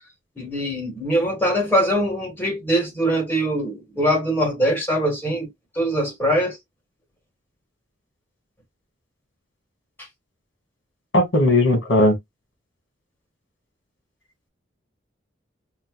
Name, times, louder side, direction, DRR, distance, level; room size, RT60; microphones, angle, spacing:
voice 1, 0.4-5.5 5.7-6.6, equal, 10° left, 1.4 m, -22 dB
voice 2, 11.1-12.2, left 1 dB, 70° left, 1.6 m, -17 dB
5.3 x 2.1 x 2.2 m
head